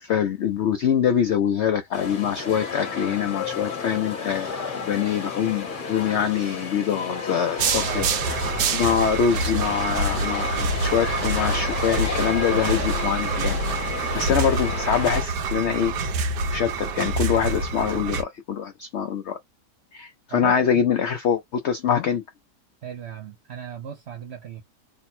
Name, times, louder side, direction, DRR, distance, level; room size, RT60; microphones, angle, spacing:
voice 1, 0.0-8.1 8.7-15.9 16.5-19.4 19.9-22.2, left 8 dB, 85° left, 0.6 m, -24 dB
sound 1, 1.9-15.2, left 5 dB, 40° left, 0.9 m, -32 dB
sound 2, 7.6-18.2, right 3 dB, 90° right, 1.4 m, -26 dB
voice 2, 7.8-8.2 20.3-20.9 22.8-24.6, right 8 dB, 60° right, 0.7 m, -37 dB
3.4 x 2.1 x 4.2 m
omnidirectional pair, 1.8 m